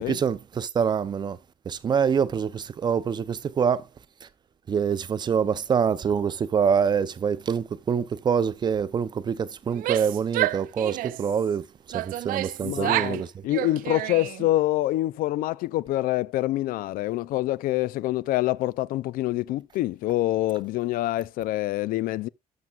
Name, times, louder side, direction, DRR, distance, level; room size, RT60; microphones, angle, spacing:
voice 1, 0.0-1.4 1.7-3.9 4.2-4.3 4.7-13.3, right 7 dB, 30° right, 0.5 m, -25 dB
Female speech woman speaking / Yell, 9.7-11.3 11.9-13.2 13.5-14.5, right 15 dB, 85° right, 0.5 m, -29 dB
voice 2, 12.6-22.3, left 16 dB, 90° left, 0.4 m, -26 dB
12.0 x 7.3 x 2.4 m
cardioid pair, 165°, 14 cm